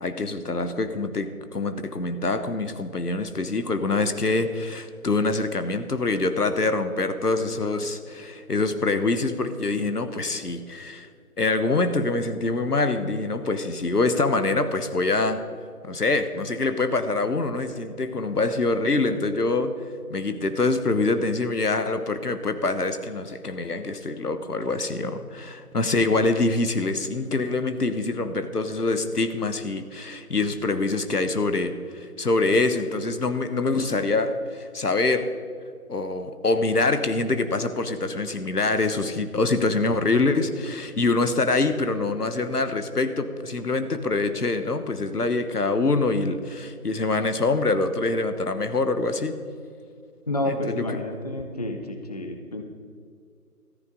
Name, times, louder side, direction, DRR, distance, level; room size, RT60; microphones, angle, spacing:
voice 1, 0.0-11.1 11.4-15.4 15.8-19.8 20.1-35.3 35.9-49.4 50.5-50.8, left 3 dB, 80° left, 9 dB, 1.3 m, -25 dB
voice 2, 50.3-52.6, left 1 dB, 25° left, 4 dB, 0.7 m, -29 dB
15.0 x 14.0 x 3.9 m, 2.2 s
figure-of-eight pair, 155°, 46 cm